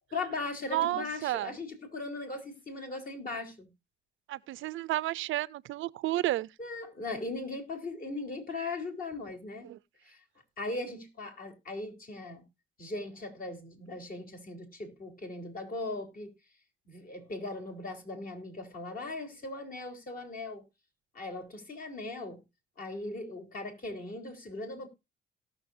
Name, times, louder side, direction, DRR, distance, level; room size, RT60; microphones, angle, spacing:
voice 1, 0.1-3.7 6.6-9.7 10.1-10.2 10.6-12.4 12.8-16.3 16.9-20.6 21.1-22.4 22.8-24.9, left 2 dB, 45° left, 3.7 m, -39 dB
voice 2, 0.7-1.5 4.3-6.5 9.6-9.8, right 15 dB, 80° right, 0.6 m, -31 dB
18.0 x 6.2 x 2.6 m
cardioid pair, 90°, 20 cm